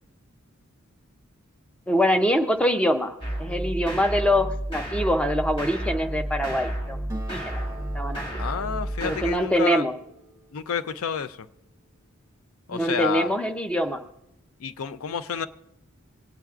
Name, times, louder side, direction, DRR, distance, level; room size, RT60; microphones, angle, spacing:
voice 1, 1.9-3.1 3.4-7.0 7.3-7.6 7.9-8.2 9.0-9.9 12.7-14.0, equal, 5° left, 6 dB, 0.5 m, -24 dB
sound 1, 3.2-9.3, right 1 dB, 25° left, 1.9 m, -31 dB
Acoustic guitar, 7.1-11.9, right 1 dB, 15° right, 1.1 m, -45 dB
voice 2, 8.4-9.8 10.5-11.4 12.7-13.3 14.6-15.5, left 7 dB, 75° left, 13 dB, 0.4 m, -29 dB
23.5 x 8.8 x 2.4 m, 0.84 s
head